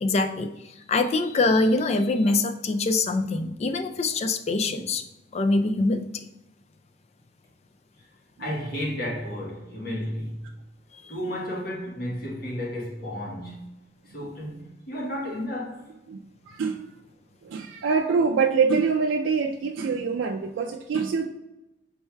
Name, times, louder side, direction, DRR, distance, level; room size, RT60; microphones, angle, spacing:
voice 1, 0.0-0.5 0.9-5.0 5.3-6.3, left 2 dB, 35° left, 0.3 m, -24 dB
voice 2, 8.4-10.4 11.1-13.7 14.0-15.9, equal, 55° left, 1.1 m, -32 dB
voice 3, 17.4-21.3, right 5 dB, 90° right, 0.3 m, -24 dB
5.4 x 4.4 x 2.2 m
head